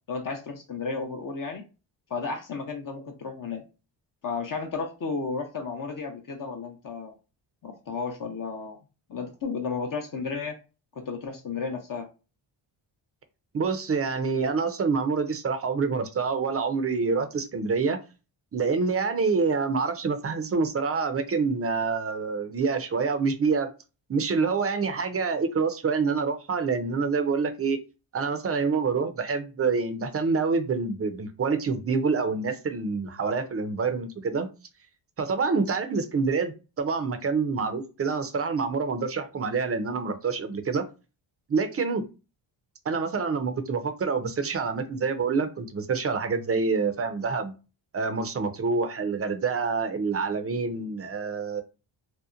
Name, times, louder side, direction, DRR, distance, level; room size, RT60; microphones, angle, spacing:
voice 1, 0.1-1.6 2.1-3.6 4.2-7.2 7.6-8.8 9.1-10.5 10.9-12.1, left 4 dB, 45° left, 3 dB, 0.6 m, -33 dB
voice 2, 13.5-18.0 18.5-23.7 24.1-27.8 28.1-34.5 35.2-40.8 41.5-42.0 42.9-47.5 47.9-51.6, right 4 dB, 30° right, 8 dB, 0.5 m, -27 dB
2.8 x 2.1 x 2.4 m, 0.31 s
cardioid pair, 70°, 49 cm